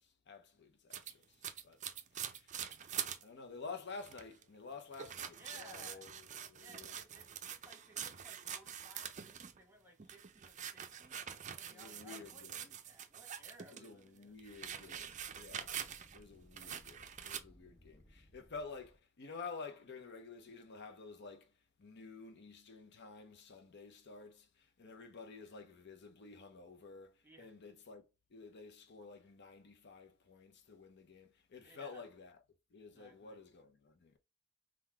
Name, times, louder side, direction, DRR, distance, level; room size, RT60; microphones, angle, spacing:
voice 1, 0.0-1.4 1.6-1.8 2.1-2.9 3.2-6.9 11.7-12.6 13.7-15.8 16.1-21.5 21.8-28.0 28.3-32.4 32.7-34.2, left 4 dB, 55° left, 0.7 m, -51 dB
sound 1, 0.9-3.2 3.7-3.8 4.0-4.4 4.9-9.6 10.0-13.9 14.2-16.2 16.6-17.4, right 9 dB, 35° right, 0.4 m, -45 dB
voice 2, 5.3-6.1 6.5-11.2 11.6-14.3 14.7-15.2 27.2-27.5 28.5-28.6 31.6-32.1 32.9-33.4, right 1 dB, 10° right, 1.2 m, -60 dB
sound 2, 14.1-19.0, equal, 20° left, 0.9 m, -64 dB
3.8 x 2.3 x 4.4 m
head